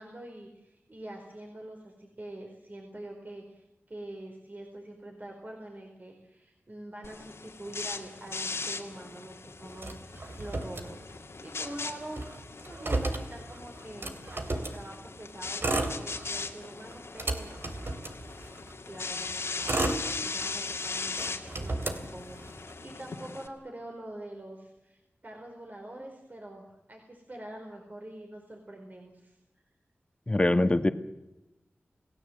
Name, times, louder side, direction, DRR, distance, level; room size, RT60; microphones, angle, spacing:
voice 1, 0.0-12.2 12.7-17.6 18.8-19.9 20.2-29.4, right 1 dB, 40° right, 2 dB, 4.4 m, -45 dB
sound 1, 7.0-23.5, left 4 dB, 80° left, 2.3 m, -39 dB
Motor vehicle (road), 9.8-11.4 11.7-11.8 12.0-14.8 15.4-16.5 16.9-18.7 19.3-20.7 21.1-22.7, right 2 dB, 60° right, 3.1 m, -33 dB
voice 2, 30.3-30.9, left 2 dB, 25° left, 9 dB, 1.6 m, -23 dB
29.0 x 17.5 x 7.9 m, 0.95 s
wide cardioid pair, 80°, 4 cm